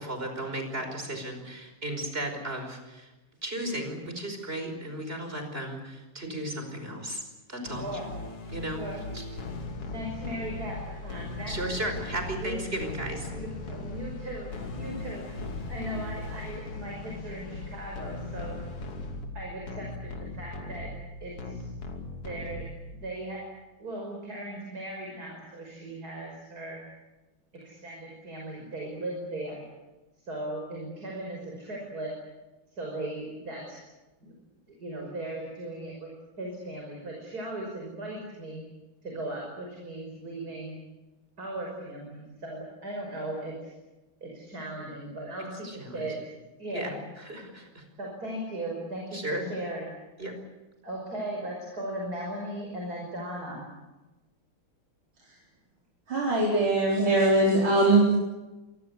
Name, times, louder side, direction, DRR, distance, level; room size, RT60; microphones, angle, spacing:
voice 1, 0.0-3.1 3.4-7.2 7.5-8.0 8.5-8.8 9.1-9.2 11.5-13.3 45.4-46.1 46.7-47.9 49.1-49.5 50.2-50.4, right 1 dB, 25° right, 5 dB, 5.4 m, -35 dB
sound 1, 7.7-23.1, left 2 dB, 90° left, 3.8 m, -38 dB
voice 2, 7.8-8.1 8.7-9.0 9.9-11.8 12.3-12.7 13.3-15.3 15.7-18.6 19.3-20.9 21.2-21.7 22.2-22.7 23.0-23.5 23.8-26.8 27.6-29.7 30.3-32.1 32.7-33.8 34.2-34.3 34.7-36.1 36.4-38.6 39.0-40.8 41.4-43.7 44.2-46.2 46.6-46.9 48.0-49.9 50.8-53.6, right 1 dB, 40° right, 0 dB, 6.2 m, -37 dB
voice 3, 56.1-58.1, right 2 dB, 65° right, -4 dB, 5.6 m, -21 dB
26.5 x 21.5 x 8.3 m, 1.1 s
omnidirectional pair, 2.4 m